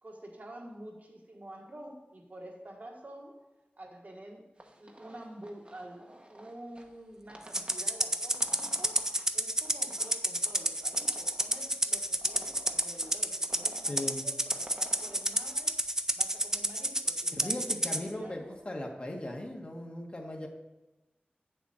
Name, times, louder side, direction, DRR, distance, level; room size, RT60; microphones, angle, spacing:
voice 1, 0.0-3.4 3.8-4.4 4.8-6.0 6.3-9.0 9.3-15.7 16.1-18.6, right 1 dB, 55° right, -1 dB, 1.6 m, -48 dB
sound 1, 4.6-15.3, right 1 dB, 35° right, 1.0 m, -52 dB
Rattle (instrument), 7.5-18.0, right 1 dB, 15° right, 0.5 m, -30 dB
voice 2, 13.9-14.2 17.3-20.5, left 1 dB, 35° left, 1 dB, 1.4 m, -38 dB
8.2 x 7.1 x 4.3 m, 1.0 s
wide cardioid pair, 75°, 3 cm